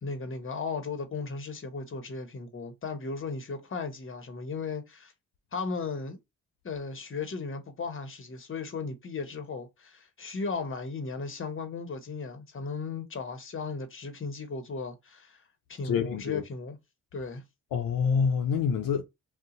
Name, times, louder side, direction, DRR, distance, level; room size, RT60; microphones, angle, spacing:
voice 1, 0.0-5.1 5.5-6.2 6.6-15.4 15.7-16.8 17.1-17.4, left 4 dB, 35° left, 1.0 m, -36 dB
voice 2, 15.8-16.4 17.7-19.0, left 6 dB, 80° left, 0.6 m, -26 dB
2.7 x 2.2 x 3.7 m
cardioid pair, 65°, 34 cm